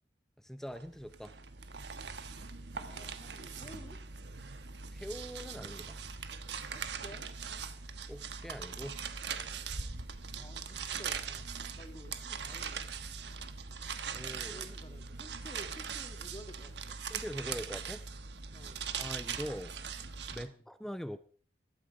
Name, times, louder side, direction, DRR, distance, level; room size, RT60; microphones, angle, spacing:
voice 1, 0.4-1.4 4.9-6.0 8.1-9.0 14.0-14.6 17.1-18.1 19.0-19.7 20.3-21.2, equal, ahead, 12 dB, 0.6 m, -42 dB
sound 1, 0.7-20.5, right 6 dB, 70° right, 1.2 m, -41 dB
voice 2, 2.7-4.0 6.7-7.3 10.4-11.5 11.8-12.8 14.5-17.0 18.5-18.8 20.4-20.6, left 1 dB, 25° left, 5 dB, 2.3 m, -52 dB
15.0 x 13.0 x 5.0 m, 0.41 s
head